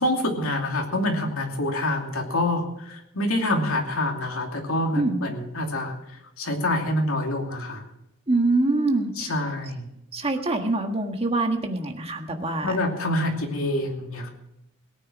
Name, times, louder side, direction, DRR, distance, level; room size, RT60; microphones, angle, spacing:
voice 1, 0.0-5.9 6.4-7.8 9.2-9.9 12.6-14.3, left 1 dB, 80° left, 2 dB, 2.8 m, -26 dB
voice 2, 8.3-9.3 10.1-12.8, right 2 dB, 30° right, 4 dB, 1.6 m, -24 dB
18.0 x 9.3 x 6.2 m, 0.82 s
head